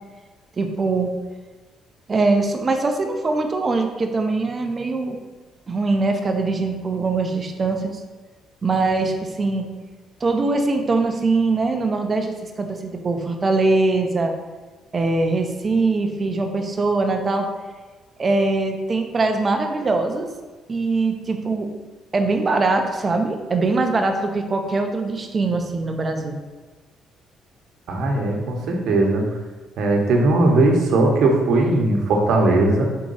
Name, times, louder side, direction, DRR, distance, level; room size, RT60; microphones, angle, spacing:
voice 1, 0.6-1.1 2.1-5.2 5.7-8.0 8.6-9.7 10.2-14.3 14.9-17.5 18.2-20.3 20.7-21.7 22.1-26.4, right 3 dB, 25° right, 5 dB, 0.7 m, -22 dB
voice 2, 27.9-29.3 29.8-32.8, right 2 dB, 65° right, 1 dB, 1.1 m, -18 dB
4.7 x 3.7 x 5.5 m, 1.3 s
cardioid pair, 135°, 0 cm